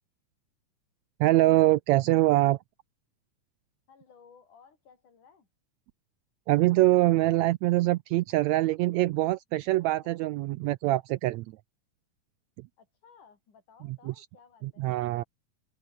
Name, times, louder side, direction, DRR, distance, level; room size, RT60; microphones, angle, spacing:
voice 1, 1.2-2.6 6.5-11.5 14.1-14.2 14.8-15.2, right 17 dB, 85° right, 1.6 m, -24 dB
voice 2, 3.9-5.5 9.8-10.2 12.8-14.9, left 6 dB, 75° left, 6.0 m, -58 dB
omnidirectional pair, 3.6 m